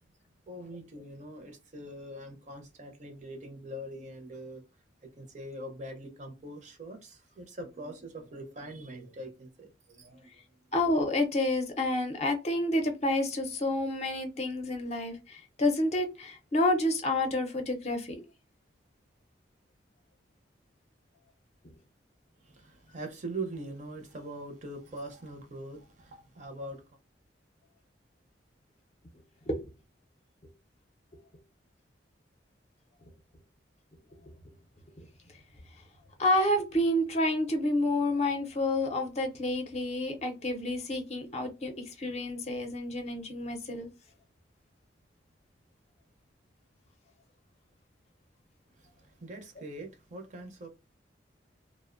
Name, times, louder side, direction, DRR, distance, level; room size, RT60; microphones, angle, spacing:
voice 1, 0.5-4.6 5.2-10.3 22.4-26.8 48.8-50.7, right 1 dB, 40° right, 0.5 m, -42 dB
voice 2, 10.7-18.2 29.5-29.7 35.0-35.1 36.2-43.9, left 1 dB, 35° left, 0.5 m, -29 dB
2.5 x 2.0 x 2.4 m
head